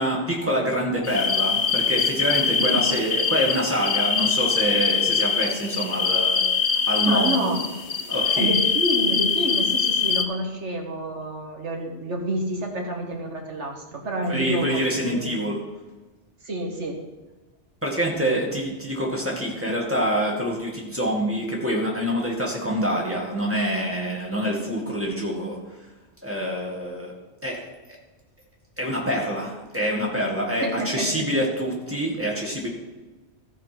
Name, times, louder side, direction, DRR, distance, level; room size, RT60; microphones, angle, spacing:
voice 1, 0.0-6.4 6.9-7.5 8.1-8.6 14.3-15.6 17.8-25.6 26.2-27.1 27.4-27.6 28.8-32.7, equal, 10° right, -2 dB, 2.1 m, -26 dB
sound 1, 1.0-10.2, left 6 dB, 55° left, 1.0 m, -23 dB
voice 2, 7.1-7.6 8.4-15.4 16.4-17.0 30.6-31.3, right 1 dB, 85° right, 1 dB, 2.0 m, -28 dB
14.0 x 4.8 x 6.0 m, 1.2 s
omnidirectional pair, 1.2 m